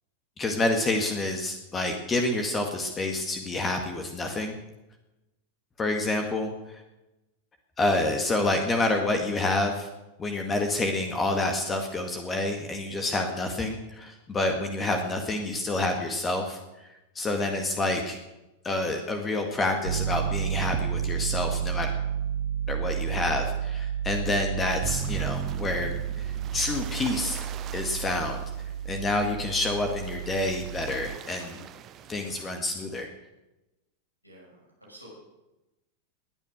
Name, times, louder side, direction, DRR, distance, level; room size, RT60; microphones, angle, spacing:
voice 1, 0.4-4.6 5.8-6.8 7.8-9.9 10.2-16.9 17.2-18.2 18.6-21.9 22.7-27.4 27.7-28.4 28.9-31.6 32.1-33.1, left 2 dB, 20° left, 4 dB, 1.9 m, -28 dB
Piano, 19.8-31.2, right 9 dB, 65° right, 0.4 m, -31 dB
sound 1, 24.8-32.6, right 10 dB, 30° right, 1.0 m, -40 dB
voice 2, 34.2-35.1, right 1 dB, 90° left, -5 dB, 5.9 m, -51 dB
20.0 x 10.0 x 6.5 m, 0.99 s
figure-of-eight pair, 90°, 0 cm